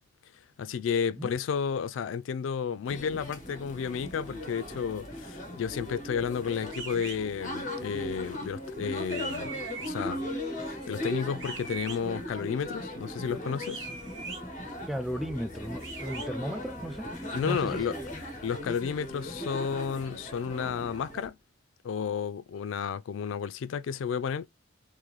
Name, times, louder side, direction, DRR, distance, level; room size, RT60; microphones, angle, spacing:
voice 1, 0.6-9.5 9.8-10.3 10.6-13.9 17.3-17.9 18.4-21.4 21.8-24.5, left 7 dB, 90° left, 0.3 m, -32 dB
sound 1, 2.9-21.3, left 1 dB, 40° left, 1.1 m, -38 dB
sound 2, 6.7-7.2 9.1-9.9 11.4-12.0 13.6-14.4 15.8-16.3, right 4 dB, 90° right, 1.1 m, -40 dB
voice 2, 14.9-18.2, equal, ahead, 0.3 m, -35 dB
3.8 x 2.6 x 3.1 m
head